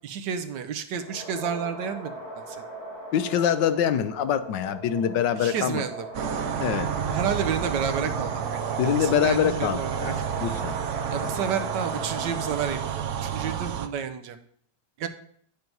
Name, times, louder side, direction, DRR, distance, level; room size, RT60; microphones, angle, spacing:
voice 1, 0.0-2.6 5.4-6.1 7.1-10.1 11.1-14.4 15.0-15.1, right 7 dB, 80° right, 1.4 m, -31 dB
sound 1, 0.9-13.4, right 2 dB, 20° left, 3.3 m, -38 dB
voice 2, 3.1-5.8 6.6-6.9 8.8-10.8, left 9 dB, 80° left, 1.4 m, -25 dB
sound 2, 6.1-13.9, right 8 dB, 65° right, 0.7 m, -30 dB
9.5 x 6.7 x 4.6 m
omnidirectional pair, 1.9 m